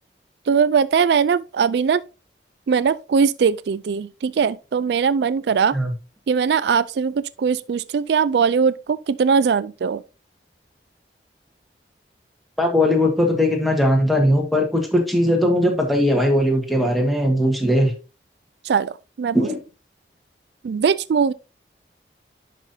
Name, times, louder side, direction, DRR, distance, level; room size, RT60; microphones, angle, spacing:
voice 1, 0.5-2.0 2.7-5.7 6.3-10.0 18.6-18.9 19.2-19.5 20.6-21.3, right 6 dB, 70° right, 0.3 m, -20 dB
voice 2, 12.6-17.9 19.3-19.6, left 1 dB, ahead, 1.6 m, -19 dB
10.5 x 5.5 x 2.7 m
head